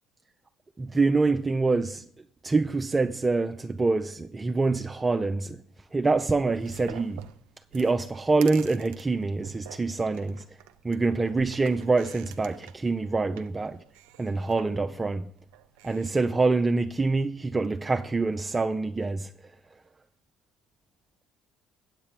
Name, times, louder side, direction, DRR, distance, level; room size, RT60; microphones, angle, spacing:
voice 1, 0.8-2.0 2.4-5.6 5.9-7.3 7.7-10.4 10.8-13.8 14.2-15.3 15.8-19.3, right 3 dB, 25° right, 0.5 m, -25 dB
sound 1, 6.4-16.2, right 11 dB, 75° right, 0.5 m, -48 dB
8.7 x 8.1 x 5.2 m
hypercardioid pair, 55°, 0 cm